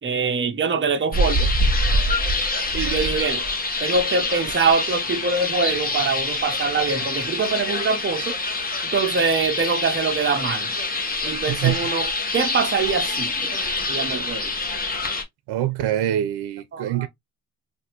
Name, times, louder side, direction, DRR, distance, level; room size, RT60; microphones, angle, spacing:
voice 1, 0.0-1.5 2.6-3.4 3.8-8.4 8.9-10.7 11.2-13.6 13.9-14.5 16.7-17.1, right 4 dB, 30° right, 0.7 m, -24 dB
sound 1, 1.1-15.2, left 2 dB, 20° left, 1.1 m, -25 dB
voice 2, 11.5-11.8 15.5-17.1, right 12 dB, 75° right, 0.5 m, -24 dB
3.5 x 2.5 x 2.8 m
cardioid pair, 120°, 40 cm